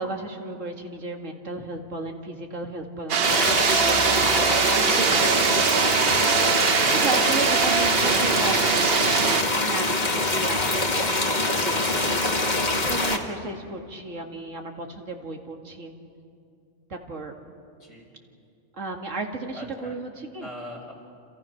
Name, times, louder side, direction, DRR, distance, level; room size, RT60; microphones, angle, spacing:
voice 1, 0.0-4.4 4.7-6.4 6.9-12.3 12.9-15.9 16.9-17.3 18.8-20.5, right 3 dB, 90° right, 2 dB, 2.5 m, -35 dB
sound 1, 3.1-9.4, right 8 dB, 55° right, 0.9 m, -22 dB
sound 2, 3.2-13.2, left 2 dB, 35° left, 1.8 m, -24 dB
voice 2, 19.5-19.9 20.4-21.0, left 1 dB, 75° left, -1 dB, 5.4 m, -41 dB
29.5 x 28.0 x 5.9 m, 2.5 s
omnidirectional pair, 1.3 m